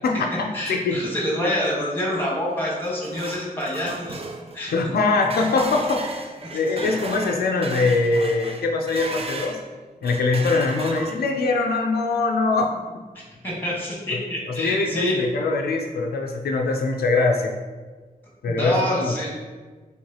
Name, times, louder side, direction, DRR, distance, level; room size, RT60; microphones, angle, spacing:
voice 1, 0.0-1.0 4.7-6.2 6.5-9.6 10.0-13.0 14.6-17.5 18.4-19.1, left 3 dB, 85° left, 2 dB, 0.4 m, -23 dB
voice 2, 0.5-4.2 4.5-4.7 6.4-6.9 13.4-15.2 18.5-19.3, left 1 dB, 15° left, -4 dB, 1.5 m, -26 dB
sound 1, 2.6-9.6 10.0-11.4, right 3 dB, 40° right, 0.4 m, -35 dB
4.7 x 3.1 x 2.9 m, 1.4 s
wide cardioid pair, 90°, 16 cm